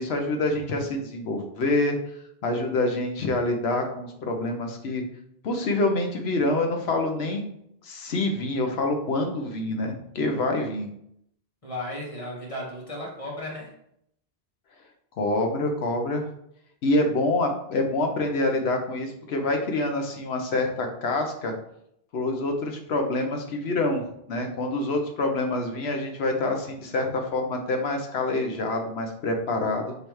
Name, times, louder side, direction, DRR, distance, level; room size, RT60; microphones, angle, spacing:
voice 1, 0.0-2.0 2.4-5.0 5.4-7.4 7.8-10.9 15.2-16.3 16.8-21.5 22.1-30.0, left 2 dB, 80° left, 4 dB, 1.1 m, -26 dB
voice 2, 11.6-13.7, left 1 dB, 35° left, -4 dB, 1.4 m, -35 dB
5.4 x 3.2 x 3.1 m, 0.73 s
omnidirectional pair, 1.1 m